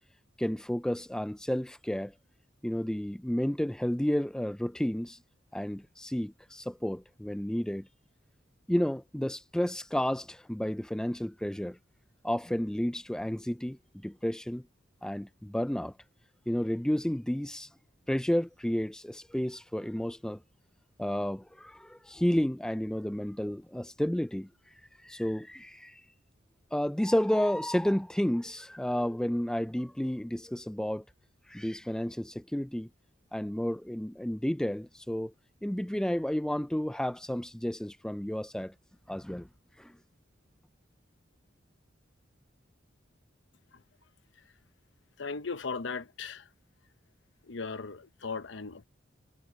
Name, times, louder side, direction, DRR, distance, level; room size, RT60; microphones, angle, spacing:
voice 1, 0.4-2.1 2.6-5.2 5.5-7.9 8.7-11.8 12.2-13.8 14.0-14.6 15.0-15.9 16.5-17.7 18.1-20.4 21.0-24.5 25.0-26.0 26.7-31.0 31.5-32.9 33.3-35.3 35.6-38.7 39.1-39.5 39.8-39.9, equal, 5° left, 0.3 m, -31 dB
voice 2, 45.2-46.5 47.4-48.9, left 4 dB, 70° left, 0.9 m, -37 dB
head